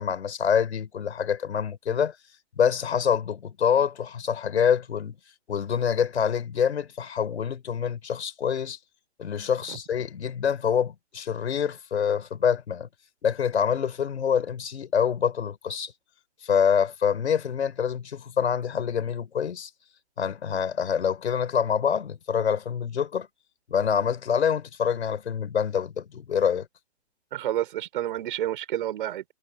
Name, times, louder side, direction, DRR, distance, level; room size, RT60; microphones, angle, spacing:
voice 1, 0.0-2.1 2.6-5.2 5.5-8.8 9.2-12.9 13.2-15.9 16.4-19.7 20.2-23.3 23.7-26.7, left 7 dB, 65° left, 4.9 m, -26 dB
voice 2, 27.3-29.2, right 12 dB, 50° right, 4.7 m, -29 dB
hypercardioid pair, 140°, 35 cm